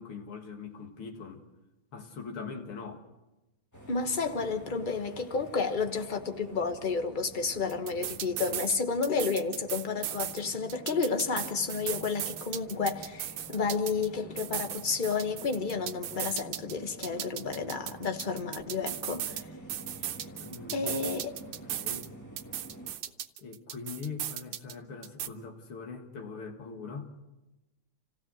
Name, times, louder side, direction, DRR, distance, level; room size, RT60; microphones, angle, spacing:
voice 1, 0.0-1.4 1.9-3.0 20.4-22.1 23.4-27.1, left 5 dB, 85° left, 2.8 m, -42 dB
sound 1, 3.7-22.9, right 1 dB, 10° left, 1.9 m, -49 dB
voice 2, 3.9-19.4 20.7-21.3, left 4 dB, 30° left, 1.1 m, -31 dB
sound 2, 7.7-8.8 9.0-10.4 10.7-14.1 14.4-16.7 17.0-19.4 19.7-22.1 22.4-24.7 25.0-25.3, right 11 dB, 80° right, 1.7 m, -36 dB
27.5 x 16.0 x 6.3 m
omnidirectional pair, 2.3 m